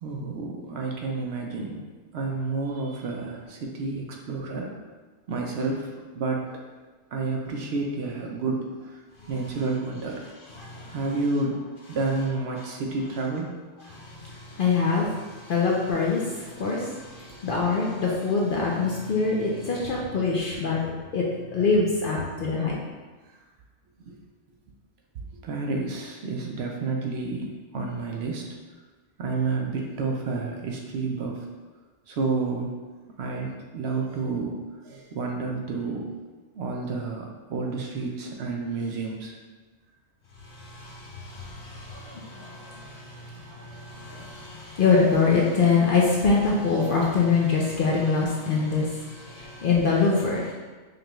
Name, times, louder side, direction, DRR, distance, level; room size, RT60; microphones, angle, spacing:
voice 1, 0.0-1.8 2.1-4.7 5.3-6.6 7.1-9.0 9.3-10.2 10.7-11.6 11.9-13.6 17.3-17.4 24.0-24.2 25.4-28.5 29.2-31.4 32.1-32.7 33.2-34.6 34.8-36.1 36.6-39.3, right 3 dB, 65° right, 0 dB, 0.8 m, -30 dB
voice 2, 10.6-11.0 14.1-15.1 15.4-20.8 21.1-21.2 21.5-22.8 40.6-50.5, left 4 dB, 60° left, -3 dB, 0.6 m, -24 dB
5.0 x 2.3 x 3.0 m, 1.3 s
omnidirectional pair, 1.3 m